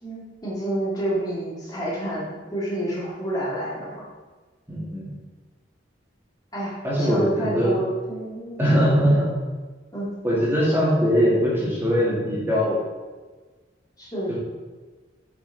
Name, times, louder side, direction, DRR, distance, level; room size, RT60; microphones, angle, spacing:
voice 1, 0.0-4.0 6.5-8.6 9.9-10.1 14.0-14.3, right 1 dB, 20° left, -7 dB, 2.2 m, -29 dB
voice 2, 4.7-5.1 6.8-7.7 8.6-9.2 10.2-12.8 14.3-14.4, equal, 10° right, -7 dB, 2.2 m, -21 dB
7.8 x 5.9 x 4.1 m, 1.3 s
head